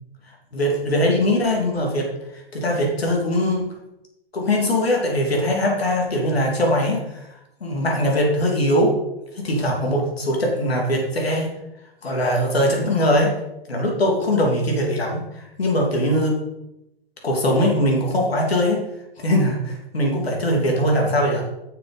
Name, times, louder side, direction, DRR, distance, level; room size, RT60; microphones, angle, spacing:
voice 1, 0.5-2.1 2.5-3.7 4.3-7.2 7.6-8.9 9.3-11.5 12.0-13.3 13.7-16.4 17.2-18.8 19.2-21.5, left 1 dB, 90° left, 0 dB, 2.9 m, -21 dB
9.7 x 6.7 x 4.2 m, 0.89 s
hypercardioid pair, 130°, 30 cm